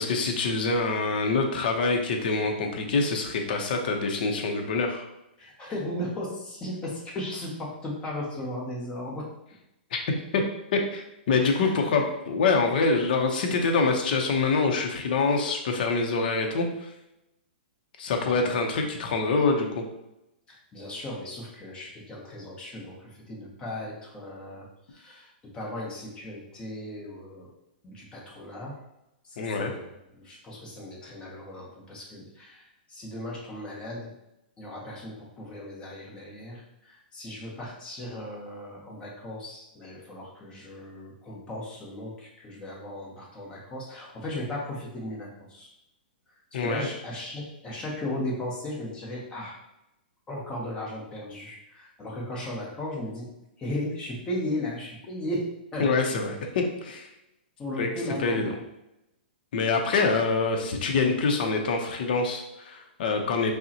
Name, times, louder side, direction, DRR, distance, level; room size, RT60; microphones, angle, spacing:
voice 1, 0.0-5.0 9.9-10.0 10.3-10.4 10.7-16.9 18.0-19.8 29.4-29.7 46.5-46.9 55.8-57.1 57.8-57.9 58.2-58.5 59.5-63.5, left 4 dB, 60° left, 3 dB, 0.6 m, -25 dB
voice 2, 5.4-9.3 11.4-11.8 18.2-18.5 20.5-27.5 27.8-28.8 29.2-29.9 30.1-34.1 34.6-45.7 46.5-49.6 50.3-53.3 53.6-56.3 57.6-58.6, left 1 dB, 15° left, -3 dB, 0.9 m, -36 dB
5.3 x 2.1 x 2.8 m, 0.89 s
hypercardioid pair, 150°, 6 cm